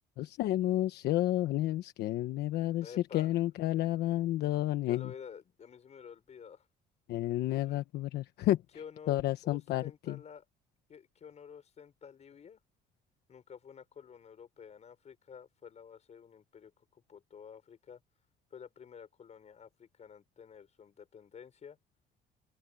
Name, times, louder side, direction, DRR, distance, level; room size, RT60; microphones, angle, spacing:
voice 1, 0.2-5.1 7.1-8.6 9.1-10.2, left 14 dB, 75° left, 1.1 m, -31 dB
voice 2, 2.8-3.3 4.8-6.7 7.5-7.8 8.7-10.4 10.9-12.6 13.3-18.0 18.5-21.8, left 7 dB, 40° left, 6.1 m, -51 dB
open air
cardioid pair, 110°, 17 cm